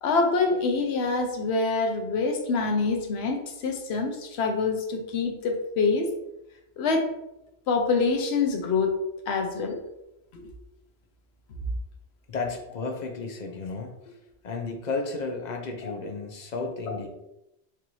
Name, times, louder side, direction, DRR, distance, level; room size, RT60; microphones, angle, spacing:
voice 1, 0.0-6.1 6.8-7.1 7.7-9.0 9.3-9.8 15.8-15.9, left 4 dB, 70° left, 3 dB, 0.9 m, -25 dB
voice 2, 12.3-14.2 14.4-17.1, left 3 dB, 50° left, 3 dB, 0.6 m, -33 dB
4.7 x 2.5 x 3.0 m, 0.88 s
omnidirectional pair, 1.2 m